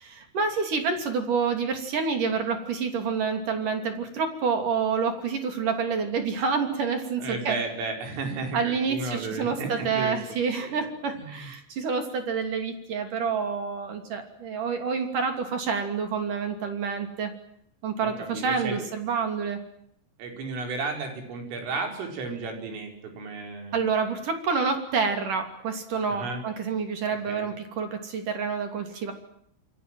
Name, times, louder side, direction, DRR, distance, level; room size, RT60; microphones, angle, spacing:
voice 1, 0.0-7.6 8.5-17.3 17.8-19.6 23.7-29.1, right 5 dB, 45° right, 6 dB, 3.9 m, -28 dB
voice 2, 7.2-10.2 10.6-10.9 11.1-11.5 18.0-18.9 20.2-23.8 26.1-26.4 27.3-27.5, right 3 dB, 75° right, 4 dB, 7.3 m, -33 dB
28.0 x 23.5 x 7.7 m, 0.69 s
omnidirectional pair, 5.9 m